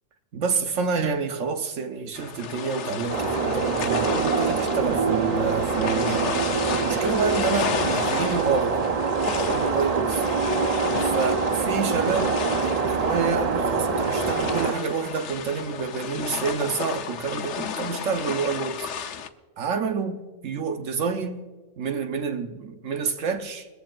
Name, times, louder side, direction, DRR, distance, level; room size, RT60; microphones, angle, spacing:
voice 1, 0.3-6.4 6.8-8.8 9.4-10.2 11.1-18.9 19.6-21.5 21.8-23.7, right 5 dB, 80° right, 1.2 m, -28 dB
sound 1, 2.2-19.3, left 7 dB, 70° left, 1.0 m, -33 dB
sound 2, 3.1-14.7, right 5 dB, 45° right, 0.5 m, -25 dB
21.5 x 15.0 x 2.4 m
omnidirectional pair, 1.3 m